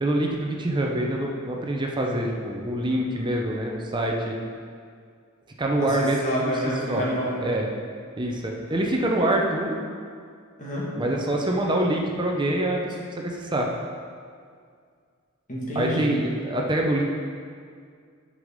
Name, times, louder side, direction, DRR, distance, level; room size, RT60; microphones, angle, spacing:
voice 1, 0.0-4.4 5.6-6.5 6.9-7.0 7.4-7.7 8.2-9.8 11.0-13.7 15.7-17.0, right 1 dB, 20° right, 0 dB, 0.7 m, -25 dB
voice 2, 6.2-7.4 10.6-10.9 15.5-16.1, equal, 35° left, -6 dB, 2.0 m, -28 dB
6.4 x 5.4 x 6.5 m, 2.1 s
head